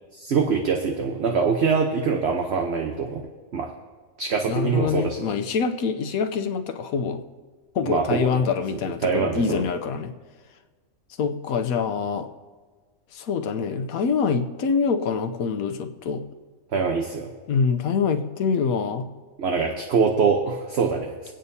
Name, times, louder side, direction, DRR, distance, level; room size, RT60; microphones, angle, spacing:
voice 1, 0.2-3.3 3.5-3.7 4.2-5.2 7.8-8.4 8.7-9.7 16.7-17.3 19.4-21.3, right 5 dB, 55° right, 3 dB, 1.0 m, -24 dB
voice 2, 4.5-7.2 7.7-10.1 11.2-12.3 13.1-16.2 17.5-19.1, left 5 dB, 85° left, 7 dB, 1.2 m, -25 dB
24.0 x 8.9 x 2.7 m, 1.4 s
omnidirectional pair, 1.4 m